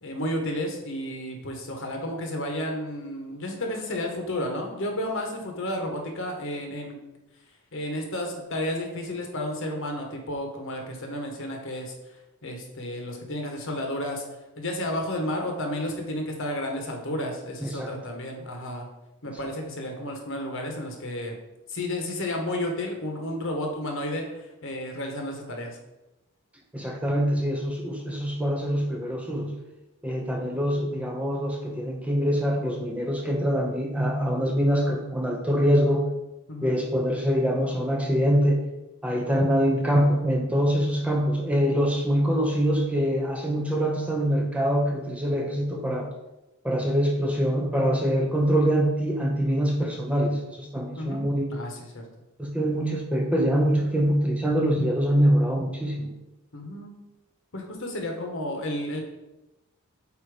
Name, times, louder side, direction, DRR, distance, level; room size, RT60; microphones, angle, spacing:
voice 1, 0.0-7.0 7.7-11.9 12.4-14.2 14.6-18.9 19.2-21.3 21.7-25.8 36.5-36.8 51.0-51.2 51.5-52.0 56.5-57.0 57.5-59.0, left 1 dB, 60° left, 2 dB, 1.3 m, -32 dB
voice 2, 26.7-29.5 30.0-36.1 36.6-38.6 39.0-46.1 46.6-51.5 52.4-56.1, equal, 5° right, 1 dB, 0.7 m, -24 dB
8.3 x 3.0 x 4.9 m, 0.97 s
head